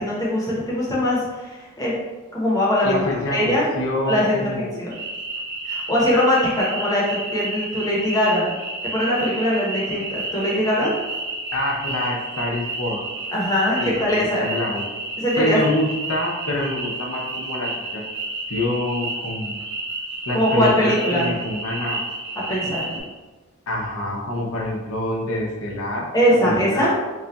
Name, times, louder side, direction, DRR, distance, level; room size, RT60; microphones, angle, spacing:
voice 1, 0.0-1.9 2.3-3.7 4.1-4.9 5.6-8.5 8.9-10.9 13.3-14.5 15.2-15.6 20.3-21.3 22.5-22.9 26.1-26.9, equal, 20° left, -6 dB, 0.9 m, -21 dB
voice 2, 2.8-4.8 11.5-13.1 13.8-14.9 15.4-18.0 18.5-19.6 20.3-22.0 23.7-26.1 26.4-26.9, left 1 dB, 85° left, -1 dB, 0.7 m, -26 dB
sound 1, 4.9-23.0, right 2 dB, 55° right, 0.7 m, -31 dB
3.2 x 2.4 x 3.9 m, 1.2 s
head